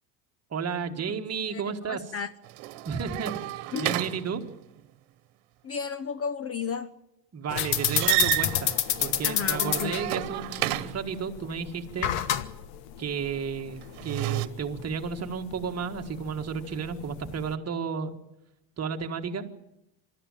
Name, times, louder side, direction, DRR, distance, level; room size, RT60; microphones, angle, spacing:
voice 1, 0.5-2.0 2.9-4.4 7.3-12.1 13.0-18.2 18.8-19.4, right 6 dB, 30° right, 5 dB, 1.7 m, -33 dB
voice 2, 1.5-2.3 3.7-4.0 5.6-6.9 9.2-9.9, left 6 dB, 30° left, 16 dB, 0.7 m, -33 dB
sound 1, 2.4-4.8 7.6-11.2 13.8-14.5, right 18 dB, 75° right, 1.3 m, -31 dB
sound 2, 7.5-17.5, left 11 dB, 80° left, 1.3 m, -31 dB
24.5 x 13.0 x 9.1 m, 0.88 s
cardioid pair, 120°, 49 cm